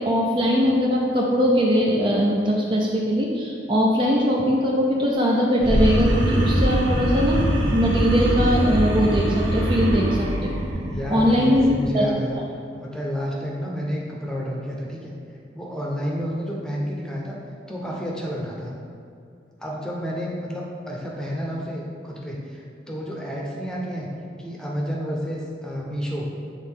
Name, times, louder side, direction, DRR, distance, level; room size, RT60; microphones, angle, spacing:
voice 1, 0.0-10.5 11.1-11.6 11.9-12.0, equal, 25° right, -3 dB, 0.5 m, -21 dB
sound 1, 5.6-11.9, right 1 dB, 90° right, 1.1 m, -23 dB
voice 2, 10.9-12.4 12.8-15.2 15.5-17.4 17.7-18.7 19.6-24.1 24.4-26.3, equal, 5° left, -3 dB, 0.8 m, -30 dB
8.2 x 3.8 x 3.6 m, 2.4 s
head